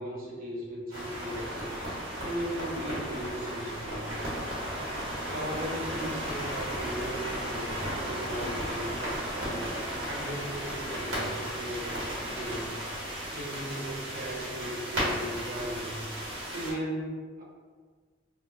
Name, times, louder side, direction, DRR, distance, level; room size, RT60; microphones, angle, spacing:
voice 1, 0.0-1.7 2.2-4.2 5.2-9.7 10.0-12.8 13.3-16.0 16.5-17.4, equal, 45° right, -5 dB, 0.8 m, -37 dB
sound 1, 0.9-16.7, equal, 75° right, 1.5 m, -35 dB
3.7 x 2.2 x 3.0 m, 1.5 s
head